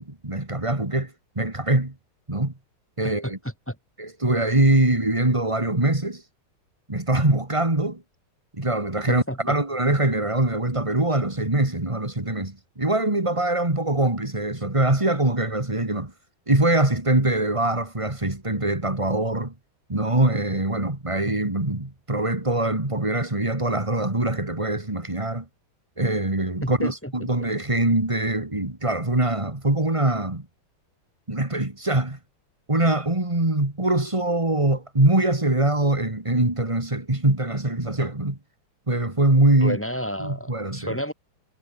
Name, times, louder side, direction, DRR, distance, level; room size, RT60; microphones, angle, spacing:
voice 1, 0.0-1.9 2.3-2.5 3.0-3.4 4.0-6.2 6.9-8.0 8.5-16.1 16.5-19.5 19.9-25.5 26.0-30.5 31.3-32.2 32.7-38.4 38.9-39.8 40.2-41.0, right 2 dB, 15° right, 2.8 m, -23 dB
voice 2, 9.1-9.6 26.6-27.5 39.6-41.1, equal, 5° left, 5.7 m, -31 dB
omnidirectional pair, 2.4 m